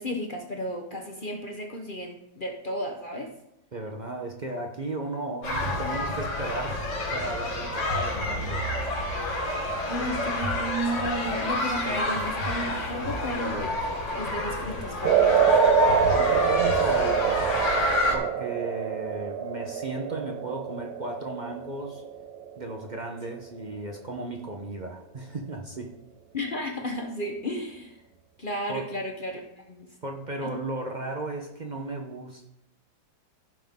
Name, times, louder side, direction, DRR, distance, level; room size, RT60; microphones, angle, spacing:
voice 1, 0.0-3.3 9.9-15.5 26.3-28.0 28.4-29.9 30.4-30.6, equal, 45° left, 3 dB, 0.6 m, -33 dB
voice 2, 3.7-6.8 7.1-8.7 11.7-12.0 16.1-17.4 18.1-22.0 22.6-25.9 28.7-28.9 30.0-32.5, right 2 dB, 55° right, 2 dB, 0.5 m, -35 dB
sound 1, 5.4-18.2, left 1 dB, 80° left, 2.6 m, -28 dB
sound 2, 15.0-23.4, right 7 dB, 75° right, 0.8 m, -25 dB
15.5 x 5.8 x 3.6 m, 0.85 s
omnidirectional pair, 2.1 m